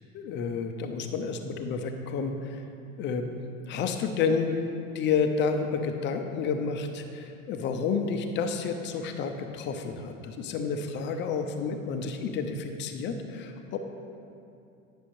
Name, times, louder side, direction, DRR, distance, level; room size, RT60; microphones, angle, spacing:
voice 1, 0.1-2.6 3.0-3.3 3.7-4.6 4.9-13.8, left 5 dB, 25° left, 5 dB, 0.5 m, -30 dB
9.6 x 6.3 x 2.6 m, 2.6 s
figure-of-eight pair, 80°, 42 cm